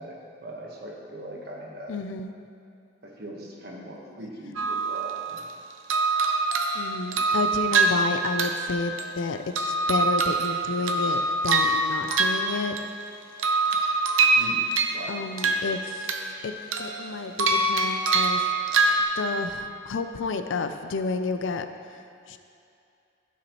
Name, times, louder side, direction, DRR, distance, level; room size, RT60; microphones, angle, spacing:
voice 1, 0.0-1.9 3.0-5.5 14.3-14.6 14.9-15.1, right 1 dB, 55° right, -2 dB, 1.3 m, -40 dB
voice 2, 1.9-2.3 6.7-12.8 15.1-16.5 16.8-18.5 18.9-21.7 22.3-22.4, left 4 dB, 75° left, 8 dB, 0.5 m, -31 dB
sound 1, 4.6-5.5 5.9-9.2 9.6-13.0 13.4-15.1 15.4-16.4 16.7-19.0, right 3 dB, 90° right, 0.7 m, -24 dB
14.0 x 5.9 x 3.0 m, 2.5 s
head